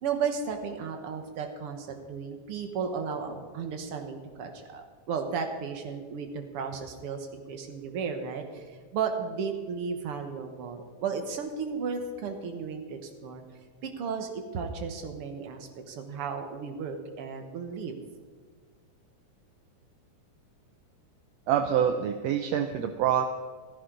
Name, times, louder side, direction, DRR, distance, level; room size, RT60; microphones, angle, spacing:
voice 1, 0.0-13.4 13.8-17.9, right 6 dB, 55° right, 5 dB, 2.0 m, -34 dB
voice 2, 21.5-23.3, right 9 dB, 75° right, 6 dB, 1.6 m, -26 dB
15.5 x 14.5 x 4.0 m, 1.5 s
omnidirectional pair, 3.4 m